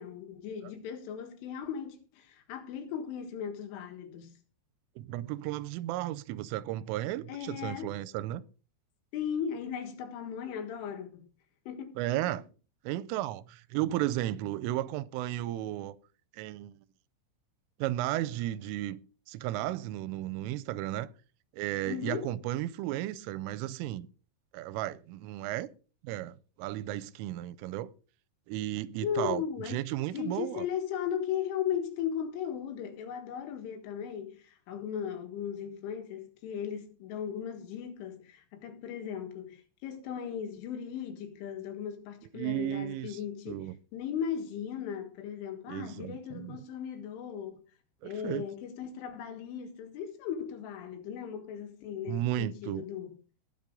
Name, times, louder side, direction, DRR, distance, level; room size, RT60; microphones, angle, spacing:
voice 1, 0.0-4.3 7.3-7.9 9.1-11.3 11.7-12.4 21.9-22.3 29.0-29.8 30.1-47.6 48.0-53.2, left 8 dB, 80° left, 4.0 m, -37 dB
voice 2, 5.0-8.4 12.0-12.5 12.8-16.0 16.3-16.8 17.8-19.0 19.3-21.1 21.5-24.1 24.5-25.7 26.0-27.9 28.5-30.7 42.3-43.2 43.5-43.7 45.7-46.5 48.0-48.5 52.1-52.8, right 14 dB, 85° right, 3.2 m, -34 dB
20.0 x 7.2 x 3.7 m
omnidirectional pair, 5.7 m